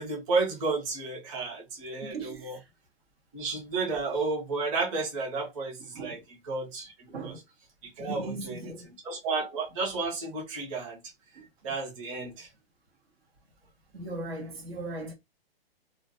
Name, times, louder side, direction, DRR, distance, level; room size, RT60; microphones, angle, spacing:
voice 1, 0.0-2.6 3.3-6.9 7.2-7.4 7.8-8.7 9.0-11.0 11.6-12.5, right 3 dB, 35° right, 1.0 m, -32 dB
voice 2, 2.0-2.6 5.9-6.2 7.1-7.4 8.0-8.9 13.9-15.1, right 2 dB, 80° right, 1.2 m, -38 dB
2.5 x 2.2 x 2.6 m
hypercardioid pair, 155°, 30 cm